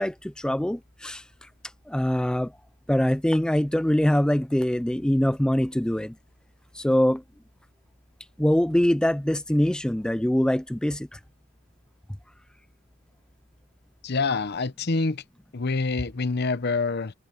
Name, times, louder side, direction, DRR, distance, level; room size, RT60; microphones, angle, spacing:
voice 1, 0.0-1.5 1.9-2.5 2.9-6.2 6.7-7.2 8.4-11.2, equal, 5° left, 0.3 m, -23 dB
voice 2, 14.0-15.2 15.5-17.1, left 3 dB, 55° left, 0.9 m, -26 dB
head